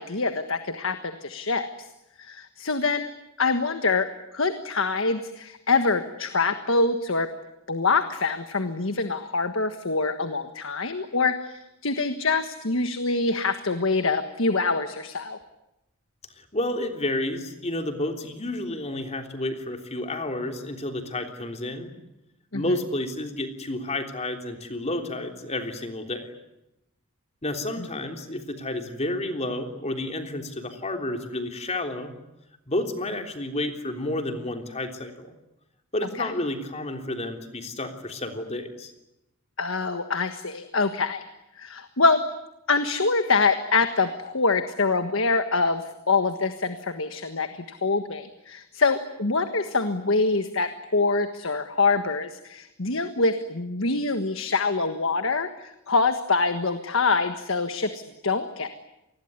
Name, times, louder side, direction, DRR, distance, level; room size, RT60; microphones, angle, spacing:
voice 1, 0.0-1.9 2.2-3.1 3.4-7.3 7.7-15.4 22.5-22.7 27.8-27.9 36.2-36.3 39.6-41.2 41.5-42.2 42.7-58.7, left 3 dB, 65° left, 9 dB, 1.5 m, -25 dB
voice 2, 16.4-21.9 22.5-26.3 27.4-32.2 32.7-35.3 35.9-38.9, left 1 dB, 30° left, 5 dB, 3.4 m, -30 dB
27.5 x 21.0 x 9.7 m, 0.91 s
head